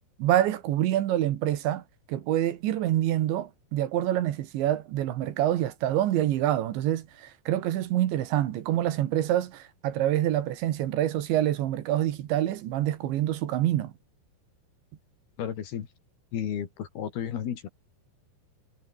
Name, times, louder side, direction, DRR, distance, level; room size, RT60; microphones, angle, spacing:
voice 1, 0.2-1.8 2.1-13.9, right 12 dB, 70° right, 3.7 m, -26 dB
voice 2, 15.4-15.9 16.3-17.7, left 9 dB, 60° left, 3.9 m, -33 dB
omnidirectional pair, 5.6 m